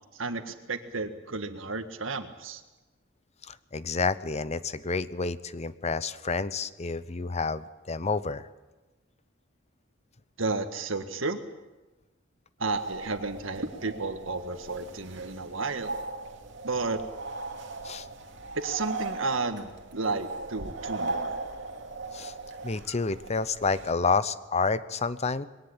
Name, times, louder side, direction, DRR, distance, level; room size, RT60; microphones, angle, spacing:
voice 1, 0.1-2.6 10.4-11.4 12.6-16.0 16.6-17.0 18.6-21.4, right 3 dB, 85° right, 8 dB, 1.7 m, -32 dB
voice 2, 3.5-8.5 17.8-18.1 22.1-22.3 22.6-25.5, left 4 dB, 35° left, 16 dB, 0.7 m, -29 dB
sound 1, 12.6-23.9, right 3 dB, 65° right, 2.4 m, -38 dB
21.5 x 18.0 x 8.7 m, 1.1 s
head